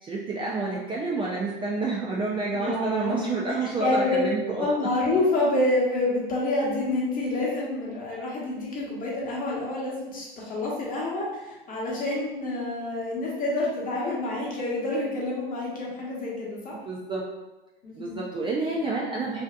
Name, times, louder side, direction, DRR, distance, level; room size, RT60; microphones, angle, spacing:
voice 1, 0.0-4.7 16.8-17.2 18.0-19.4, right 3 dB, 20° right, -4 dB, 0.3 m, -29 dB
voice 2, 2.5-4.2 4.6-16.7 17.8-18.2, left 2 dB, 30° left, -5 dB, 0.9 m, -28 dB
2.6 x 2.4 x 2.3 m, 1.1 s
hypercardioid pair, 95°, 29 cm